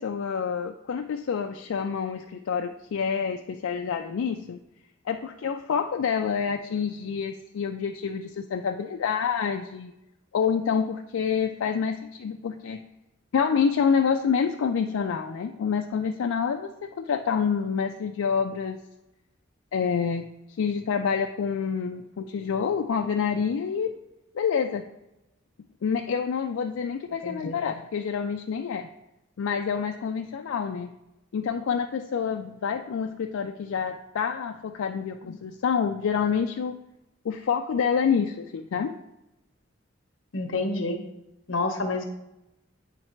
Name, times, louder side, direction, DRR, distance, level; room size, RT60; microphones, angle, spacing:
voice 1, 0.0-4.6 5.1-9.9 10.3-12.8 13.3-18.8 19.7-20.3 20.6-23.9 24.3-24.8 25.8-28.9 29.4-30.9 31.3-36.8 37.2-38.9, left 6 dB, 90° left, 4 dB, 0.4 m, -27 dB
voice 2, 27.2-27.6 40.3-41.0 41.5-42.0, left 2 dB, 70° left, 5 dB, 0.9 m, -28 dB
9.0 x 3.2 x 4.4 m, 0.93 s
head